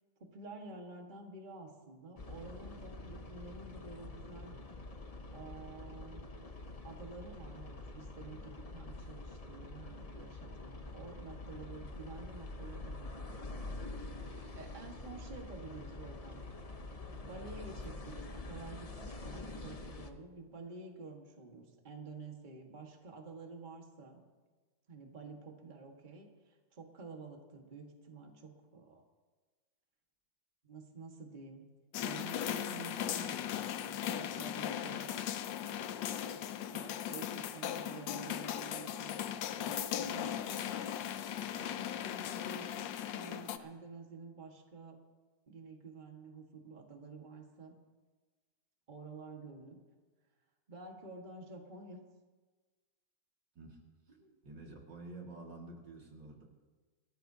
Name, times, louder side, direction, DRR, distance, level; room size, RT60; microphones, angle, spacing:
voice 1, 0.2-4.5 5.3-6.5 6.8-14.2 14.6-16.4 17.2-24.2 24.9-29.1 30.6-31.6 32.0-35.3 35.7-36.4 36.7-40.9 41.5-45.0 45.5-47.7 48.9-49.8 50.7-52.0 54.2-54.4, right 3 dB, 25° right, 1 dB, 1.7 m, -50 dB
sound 1, 2.2-20.1, left 2 dB, 35° left, 0.5 m, -46 dB
sound 2, 31.9-43.6, left 10 dB, 85° left, 1.4 m, -38 dB
voice 2, 54.4-56.4, right 2 dB, 75° right, 0 dB, 2.8 m, -49 dB
27.5 x 13.5 x 2.8 m, 1.3 s
omnidirectional pair, 1.9 m